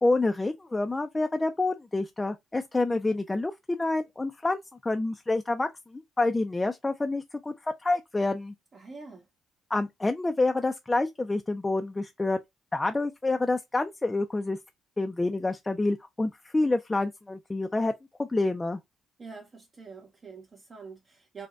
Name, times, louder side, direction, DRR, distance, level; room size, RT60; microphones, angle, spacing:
voice 1, 0.0-8.5 9.7-12.4 12.7-14.6 15.0-17.9 18.2-18.8, left 2 dB, 15° left, 0.3 m, -28 dB
voice 2, 8.7-9.3 19.2-21.5, right 4 dB, 35° right, 0.7 m, -45 dB
5.0 x 2.1 x 2.3 m
cardioid pair, 115°, 0 cm